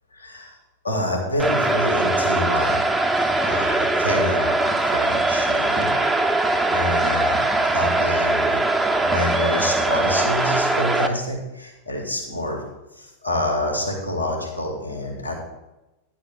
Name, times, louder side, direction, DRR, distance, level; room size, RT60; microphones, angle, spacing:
voice 1, 0.1-0.6 0.8-2.9 3.4-4.6 4.9-6.0 6.7-7.4 7.7-8.6 9.0-12.6 13.0-15.4, left 1 dB, 85° left, -1 dB, 1.9 m, -27 dB
sound 1, 1.4-11.1, right 2 dB, 10° right, 0.7 m, -21 dB
10.0 x 4.2 x 6.2 m, 0.99 s
figure-of-eight pair, 90°, 0 cm